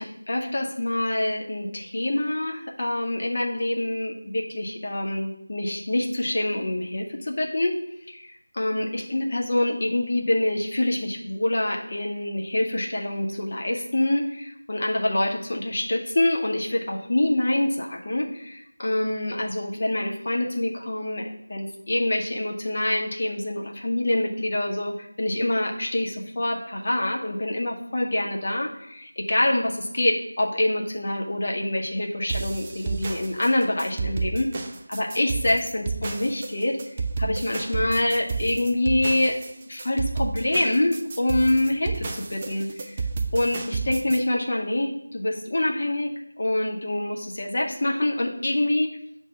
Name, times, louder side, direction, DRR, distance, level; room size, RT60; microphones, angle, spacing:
voice 1, 0.0-7.8 8.1-34.5 34.9-36.8 37.2-39.4 39.7-43.1 43.3-46.1 46.4-48.9, left 1 dB, 45° left, 1 dB, 0.8 m, -26 dB
sound 1, 32.3-44.2, right 4 dB, 20° right, 0.3 m, -31 dB
6.4 x 2.7 x 5.6 m, 0.77 s
figure-of-eight pair, 170°, 0 cm